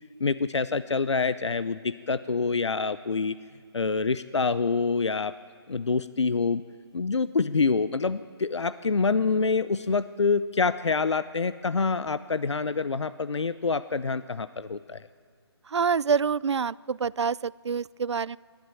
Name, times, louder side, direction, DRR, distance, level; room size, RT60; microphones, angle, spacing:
voice 1, 0.2-3.4 3.7-5.3 5.7-6.6 6.9-15.0, left 4 dB, 90° left, 14 dB, 0.7 m, -26 dB
voice 2, 15.7-18.4, right 6 dB, 80° right, 23 dB, 0.5 m, -26 dB
25.0 x 12.0 x 9.1 m, 2.3 s
figure-of-eight pair, 155°, 14 cm